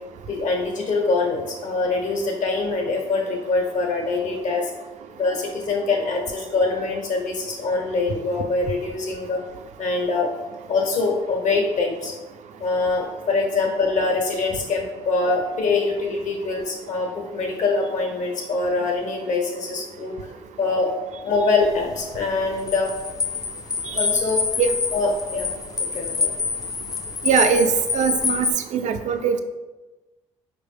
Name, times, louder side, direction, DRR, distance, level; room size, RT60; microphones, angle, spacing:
voice 1, 0.3-4.7 5.2-9.4 9.8-10.3 10.7-12.1 12.6-20.1 20.6-20.9 21.2-22.9 23.9-24.4 24.9-25.5 25.9-26.3, left 3 dB, 60° left, 1 dB, 0.9 m, -24 dB
sound 1, 21.6-28.5, left 5 dB, 25° left, 0.4 m, -26 dB
voice 2, 27.2-29.4, right 6 dB, 60° right, 7 dB, 0.4 m, -21 dB
4.5 x 2.0 x 3.3 m, 1.1 s
supercardioid pair, 60°, 14 cm